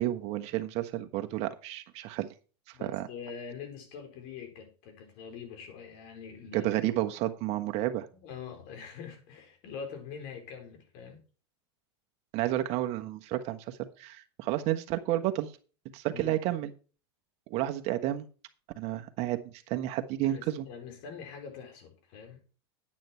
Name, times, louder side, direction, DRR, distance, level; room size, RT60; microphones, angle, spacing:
voice 1, 0.0-2.3 2.8-3.1 6.5-8.1 12.3-15.5 15.9-16.7 17.5-18.3 18.8-20.6, right 14 dB, 50° right, 7 dB, 1.3 m, -31 dB
voice 2, 2.7-6.9 8.1-11.2 16.1-16.4 20.2-22.4, left 6 dB, 60° left, 4 dB, 4.3 m, -44 dB
9.5 x 9.3 x 4.4 m, 0.37 s
supercardioid pair, 120°, 14 cm